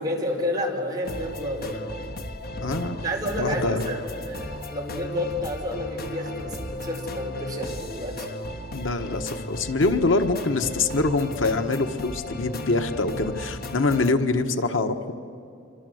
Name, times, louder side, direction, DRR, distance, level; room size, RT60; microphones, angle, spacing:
voice 1, 0.0-1.9 2.9-8.3, left 1 dB, 20° right, -1 dB, 5.0 m, -30 dB
sound 1, 1.0-14.1, left 1 dB, 50° left, 1.6 m, -35 dB
voice 2, 2.6-3.0 3.4-3.8 8.7-15.1, left 3 dB, 90° left, 7 dB, 1.5 m, -24 dB
27.5 x 24.5 x 7.9 m, 2.6 s
head